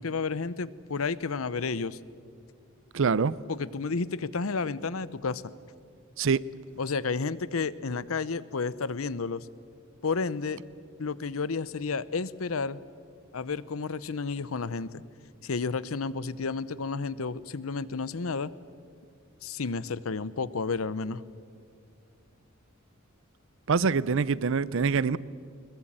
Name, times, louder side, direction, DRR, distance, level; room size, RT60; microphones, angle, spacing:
voice 1, 0.0-2.0 3.5-5.5 6.8-9.5 10.0-10.6 11.0-12.8 13.3-15.0 15.4-18.5 19.4-21.2, left 4 dB, 80° left, 0.7 m, -31 dB
voice 2, 2.9-3.3 6.2-6.4 23.7-25.2, right 5 dB, 65° right, 0.5 m, -24 dB
21.0 x 20.5 x 8.8 m
head